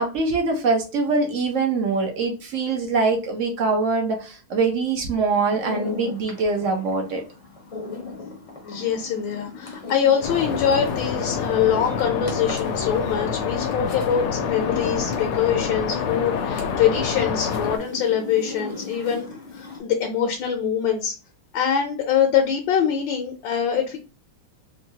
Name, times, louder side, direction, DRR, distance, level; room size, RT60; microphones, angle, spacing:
voice 1, 0.0-7.2, right 3 dB, 65° right, 1 dB, 0.7 m, -23 dB
sound 1, 5.3-19.8, left 4 dB, 40° left, 0.5 m, -38 dB
voice 2, 8.6-21.1 21.5-24.0, left 8 dB, 70° left, 3 dB, 1.3 m, -23 dB
sound 2, 10.2-17.8, left 6 dB, 85° left, 1.5 m, -27 dB
4.4 x 2.3 x 2.8 m, 0.32 s
omnidirectional pair, 2.3 m